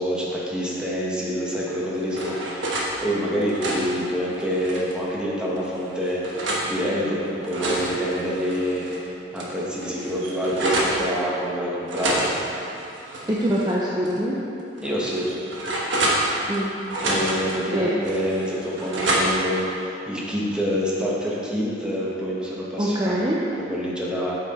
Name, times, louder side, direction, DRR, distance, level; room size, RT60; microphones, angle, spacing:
voice 1, 0.0-12.3 14.8-15.3 17.0-23.2 23.6-24.4, equal, 5° right, -6 dB, 1.3 m, -27 dB
sound 1, 1.6-2.9 3.3-5.0 5.6-6.7 7.2-9.0 9.4-9.5 9.7-11.0 11.9-13.7 14.0-14.2 14.8-16.6 16.9-17.6 18.0-19.5, right 1 dB, 80° right, 1.3 m, -28 dB
voice 2, 13.3-14.4 16.5-16.7 17.7-18.0 22.8-23.4, equal, 20° right, -6 dB, 0.7 m, -23 dB
8.1 x 6.0 x 4.3 m, 2.7 s
head